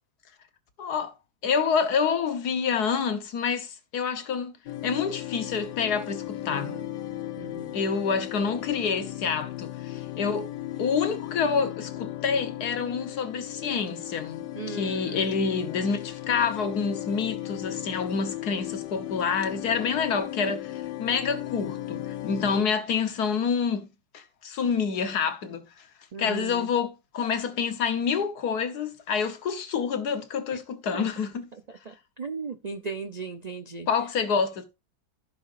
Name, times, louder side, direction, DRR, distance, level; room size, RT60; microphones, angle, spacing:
voice 1, 0.8-1.1 1.4-4.5 4.8-6.7 7.7-10.5 10.8-23.9 24.1-25.8 26.2-31.5 33.9-34.7, left 6 dB, 65° left, 1.7 m, -27 dB
sound 1, 4.7-22.6, left 14 dB, 90° left, 1.4 m, -36 dB
voice 2, 6.5-6.8 7.4-7.8 14.6-15.3 26.1-26.6 30.9-31.0 31.9-33.9, right 4 dB, 85° right, 0.3 m, -37 dB
15.0 x 6.1 x 2.6 m
omnidirectional pair, 1.8 m